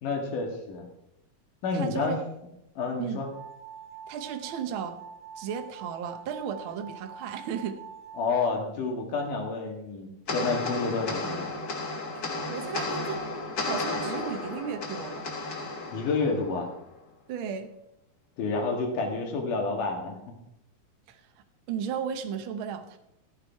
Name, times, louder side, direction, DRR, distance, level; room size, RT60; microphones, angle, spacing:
voice 1, 0.0-0.9 1.6-2.1 2.8-3.3 8.2-11.5 15.9-16.7 18.4-20.3, left 4 dB, 80° left, 2 dB, 3.5 m, -29 dB
voice 2, 1.7-2.2 3.0-3.2 4.1-5.0 5.4-7.7 12.1-13.2 13.6-15.2 17.3-17.7 21.1-21.2 21.7-23.0, right 7 dB, 75° right, 6 dB, 1.2 m, -34 dB
sound 1, 3.3-8.3, right 7 dB, 35° right, 1.6 m, -45 dB
sound 2, 10.3-16.9, left 2 dB, 45° left, 1.4 m, -33 dB
14.0 x 8.1 x 4.6 m, 0.85 s
omnidirectional pair, 3.6 m